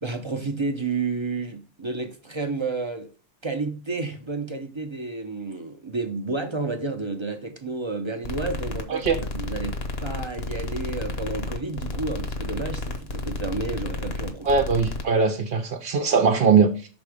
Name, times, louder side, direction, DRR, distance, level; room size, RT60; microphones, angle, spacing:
voice 1, 0.0-3.1 3.4-9.1 9.3-14.5, right 3 dB, 30° right, 0.7 m, -31 dB
sound 1, 8.2-15.0, left 2 dB, 60° left, 1.2 m, -31 dB
voice 2, 14.4-16.9, right 5 dB, 60° right, 0.9 m, -21 dB
6.1 x 3.9 x 5.0 m
omnidirectional pair, 1.2 m